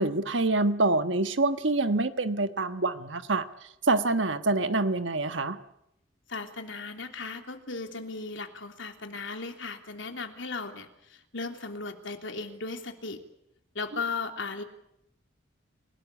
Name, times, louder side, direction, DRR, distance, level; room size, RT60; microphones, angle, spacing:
voice 1, 0.0-3.5 3.9-5.6, right 2 dB, 80° right, 10 dB, 1.5 m, -26 dB
voice 2, 6.3-13.2 13.7-14.6, left 4 dB, 80° left, 5 dB, 3.4 m, -36 dB
29.5 x 18.5 x 8.4 m, 0.78 s
head